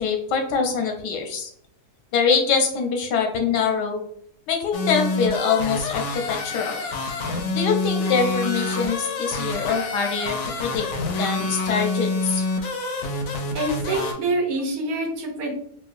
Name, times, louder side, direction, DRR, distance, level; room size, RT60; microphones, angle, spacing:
voice 1, 0.0-1.5 2.1-4.0 4.5-6.8 7.5-10.8 11.2-12.4, left 5 dB, 90° left, 3 dB, 1.3 m, -24 dB
sound 1, 4.7-14.1, left 3 dB, 65° left, 0.7 m, -27 dB
voice 2, 13.5-15.5, right 2 dB, 65° right, 2 dB, 1.1 m, -26 dB
4.3 x 2.3 x 2.5 m, 0.63 s
omnidirectional pair, 1.8 m